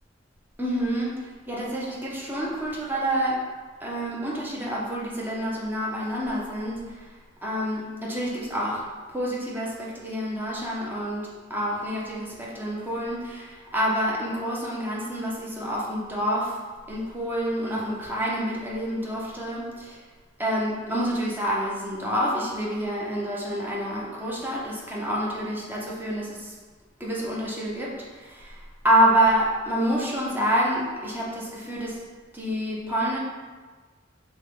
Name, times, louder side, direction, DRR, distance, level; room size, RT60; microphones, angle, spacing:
voice 1, 0.6-3.4 3.8-7.1 7.4-8.8 9.1-16.6 16.9-20.0 20.4-26.5 27.0-32.0 32.3-33.2, equal, 10° right, -5 dB, 0.8 m, -27 dB
6.2 x 2.3 x 3.7 m, 1.4 s
head